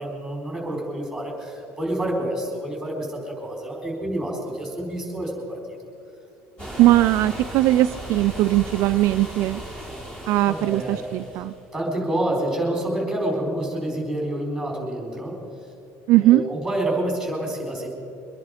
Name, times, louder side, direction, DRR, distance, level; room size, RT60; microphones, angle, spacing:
voice 1, 0.0-5.6 10.4-11.0 11.7-15.4 16.2-17.9, right 1 dB, ahead, -1 dB, 4.4 m, -28 dB
sound 1, 6.6-11.6, equal, 20° left, 3.4 m, -36 dB
voice 2, 6.8-9.6 10.3-11.5 16.1-16.4, right 15 dB, 50° right, 9 dB, 0.3 m, -19 dB
23.5 x 10.5 x 5.1 m, 2.8 s
cardioid pair, 170°, 6 cm